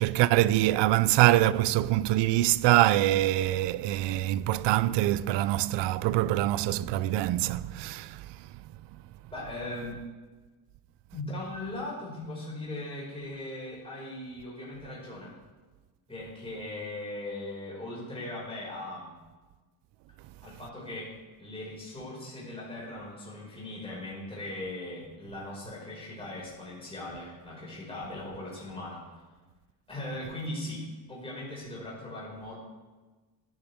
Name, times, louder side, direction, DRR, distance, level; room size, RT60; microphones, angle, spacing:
voice 1, 0.0-8.2, right 15 dB, 70° right, 0.7 m, -24 dB
voice 2, 9.3-10.0 11.1-15.3 16.1-19.1 20.4-21.1 21.4-29.1 29.9-32.6, left 1 dB, 15° left, 5.6 m, -39 dB
20.0 x 11.0 x 3.6 m
cardioid pair, 100°, 44 cm